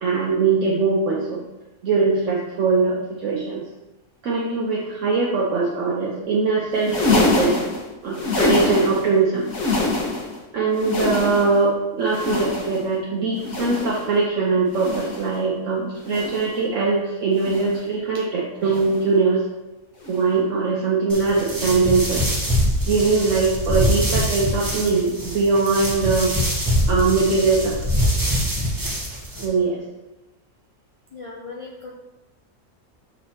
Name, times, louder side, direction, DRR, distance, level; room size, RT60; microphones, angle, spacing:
voice 1, 0.0-1.4 1.8-3.6 4.2-7.6 8.0-9.5 10.5-19.4 20.1-22.4 22.9-27.8 29.4-29.8, right 4 dB, 65° right, -4 dB, 1.2 m, -21 dB
sound 1, 6.7-9.1 9.4-10.4 10.7-11.7 12.1-12.9 13.4-14.1 14.7-15.3 16.0-16.6 17.3-17.9 18.7-19.1 20.0-20.3 21.3-21.5 22.7-22.8, left 2 dB, 70° left, 1.7 m, -25 dB
sound 2, 21.1-29.4, equal, 15° right, 1.0 m, -24 dB
voice 2, 31.1-31.9, left 3 dB, 50° left, -2 dB, 0.4 m, -37 dB
6.3 x 4.1 x 4.2 m, 1.0 s
omnidirectional pair, 1.5 m